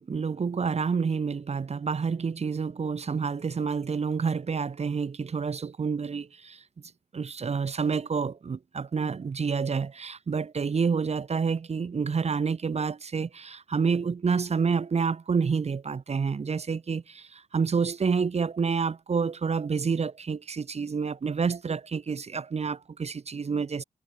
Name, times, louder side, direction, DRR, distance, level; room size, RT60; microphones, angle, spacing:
voice 1, 0.0-6.6 7.1-23.8, right 5 dB, 50° right, 1.1 m, -28 dB
cardioid pair, 75°, 14 cm